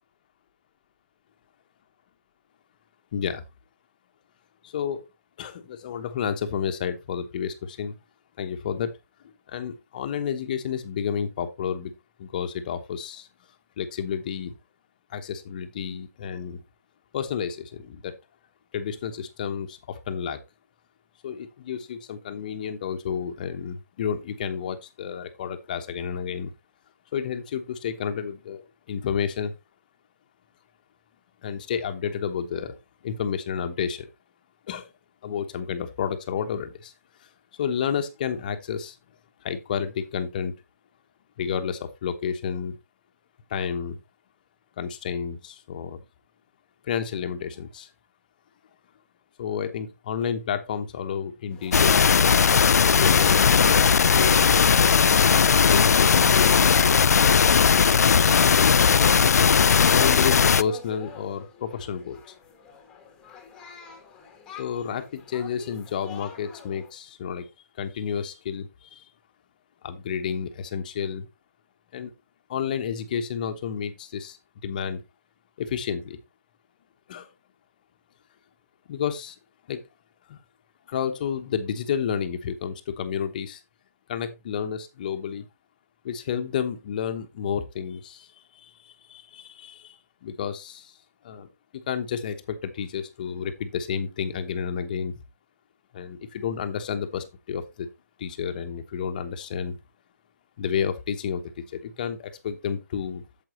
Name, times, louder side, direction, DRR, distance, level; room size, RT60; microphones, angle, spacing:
voice 1, 3.1-3.4 4.6-5.1 5.4-7.9 8.4-8.9 9.5-11.9 12.2-13.3 13.8-14.6 15.1-16.6 17.1-18.1 18.7-20.4 21.2-26.5 27.1-29.5 31.4-32.8 33.0-34.1 34.7-34.9 35.2-36.9 37.6-39.0 39.4-40.5 41.4-42.8 43.5-44.0 44.8-46.0 46.8-47.9 49.4-52.0 53.0-54.7 55.6-56.8 57.5-58.8 59.6-62.2 64.6-67.5 67.8-69.0 69.8-71.3 71.9-72.1 72.5-74.4 74.6-75.0 75.6-76.2 77.1-77.3 78.9-79.3 79.7-79.8 80.3-80.4 80.9-83.6 84.1-85.5 86.0-88.3 88.5-90.0 90.2-90.9 91.2-91.5 91.9-95.1 95.9-97.9 98.2-99.8 100.6-103.2, left 7 dB, 30° left, 8 dB, 1.0 m, -31 dB
sound 1, 51.7-60.6, left 6 dB, 70° left, 0.4 m, -18 dB
sound 2, 59.4-66.9, left 6 dB, 10° left, 1.3 m, -44 dB
8.9 x 7.5 x 3.0 m, 0.23 s
hypercardioid pair, 165°, 9 cm